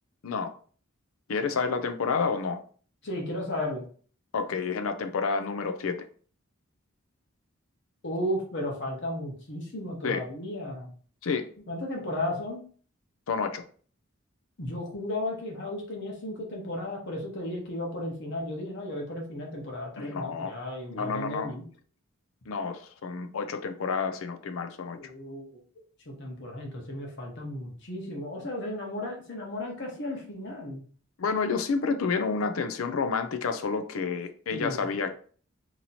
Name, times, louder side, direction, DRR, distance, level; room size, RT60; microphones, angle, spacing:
voice 1, 1.3-2.6 4.3-6.1 10.0-10.2 11.2-11.5 13.3-13.6 20.0-20.5 20.9-21.5 22.5-25.1 31.2-35.1, left 5 dB, 80° left, 8 dB, 0.5 m, -29 dB
voice 2, 3.0-3.8 8.0-10.9 11.7-12.6 14.6-21.6 25.0-25.6 26.0-30.8 34.5-34.8, left 1 dB, 55° left, 0 dB, 1.1 m, -34 dB
3.0 x 2.8 x 4.0 m, 0.44 s
head